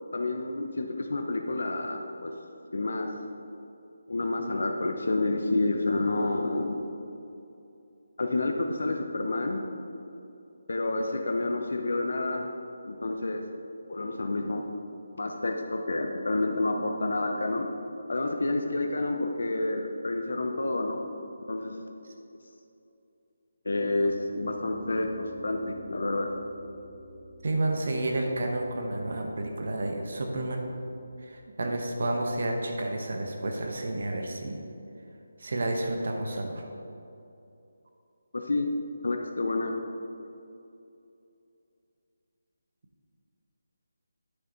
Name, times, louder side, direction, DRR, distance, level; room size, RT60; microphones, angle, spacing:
voice 1, 0.1-2.3 2.7-3.1 4.1-6.8 8.2-9.6 10.7-12.5 12.8-13.4 13.9-14.7 15.1-17.7 18.1-21.0 21.4-21.8 23.6-26.3 38.3-38.7 39.0-39.7, left 2 dB, 70° left, 3 dB, 0.7 m, -29 dB
Piano, 23.7-31.2, right 2 dB, 70° right, 1.5 m, -49 dB
voice 2, 27.4-30.7 31.2-34.6 35.4-36.6, right 2 dB, 45° right, 2 dB, 0.9 m, -30 dB
9.5 x 6.6 x 3.9 m, 2.7 s
hypercardioid pair, 180°, 0 cm